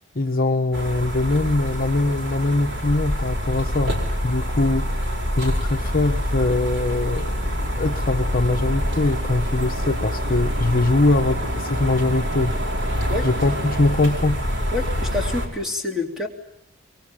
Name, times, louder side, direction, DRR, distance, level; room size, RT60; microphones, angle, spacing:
voice 1, 0.1-4.0 4.2-12.5 13.2-14.4, left 2 dB, 45° left, 4 dB, 1.0 m, -22 dB
sound 1, 0.7-15.5, equal, 60° right, 4.8 m, -26 dB
voice 2, 14.7-16.3, left 3 dB, ahead, 2 dB, 3.2 m, -27 dB
25.0 x 23.0 x 9.0 m, 0.79 s
head